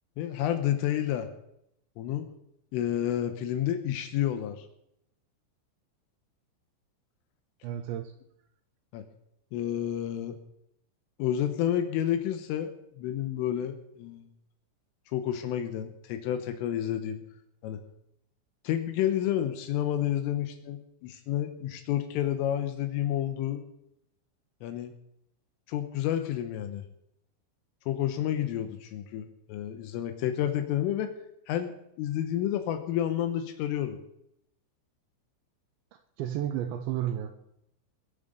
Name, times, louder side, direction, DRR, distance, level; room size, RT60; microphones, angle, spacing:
voice 1, 0.2-1.3 2.0-2.3 2.7-4.7 8.9-9.0 9.5-10.4 11.2-12.7 13.0-14.3 15.1-17.2 17.6-17.8 18.7-23.6 24.6-24.9 25.7-26.8 27.9-31.1 31.5-31.7 32.0-34.0, left 11 dB, 85° left, 7 dB, 3.6 m, -30 dB
voice 2, 7.6-8.1 36.2-37.4, right 11 dB, 75° right, 7 dB, 2.8 m, -32 dB
21.0 x 7.7 x 6.9 m, 0.78 s
omnidirectional pair, 5.9 m